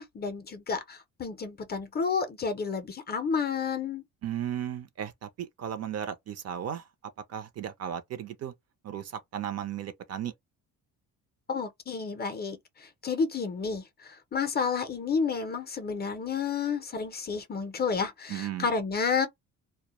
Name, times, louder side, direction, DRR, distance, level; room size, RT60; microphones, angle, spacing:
voice 1, 0.0-4.0 11.5-19.3, left 5 dB, 30° left, 0.5 m, -31 dB
voice 2, 4.2-6.9 7.3-8.5 8.8-10.3 18.3-18.7, right 10 dB, 45° right, 0.5 m, -35 dB
2.1 x 2.1 x 2.9 m
cardioid pair, 120°, 35 cm